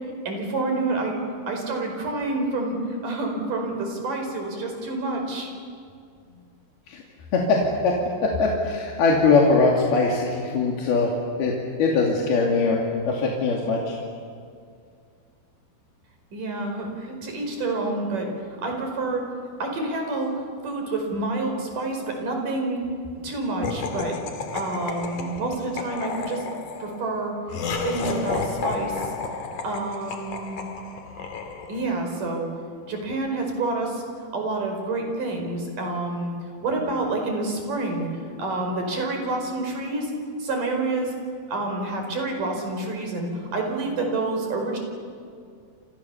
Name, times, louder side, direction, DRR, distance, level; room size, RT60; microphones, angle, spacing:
voice 1, 0.3-1.2 1.5-5.5 16.3-18.3 18.6-19.3 19.6-22.8 23.2-24.2 24.5-26.4 26.8-27.3 27.8-29.1 29.6-30.6 31.7-32.5 32.9-34.0 34.3-36.3 36.6-38.1 38.4-40.1 40.4-41.1 41.5-44.8, right 2 dB, 55° right, 3 dB, 6.4 m, -28 dB
voice 2, 7.3-8.0 8.2-11.1 11.4-11.5 11.8-14.0, left 3 dB, 80° left, -1 dB, 4.4 m, -21 dB
Laughter, 23.6-32.0, left 4 dB, 55° left, 3.6 m, -32 dB
28.5 x 28.0 x 7.1 m, 2.3 s
omnidirectional pair, 4.4 m